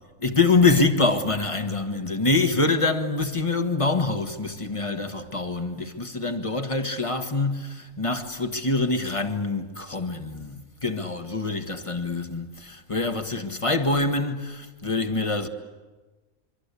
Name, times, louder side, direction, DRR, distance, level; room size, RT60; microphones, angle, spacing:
voice 1, 0.2-15.5, left 3 dB, 25° left, 1.4 m, -25 dB
25.0 x 24.5 x 8.4 m
omnidirectional pair, 1.3 m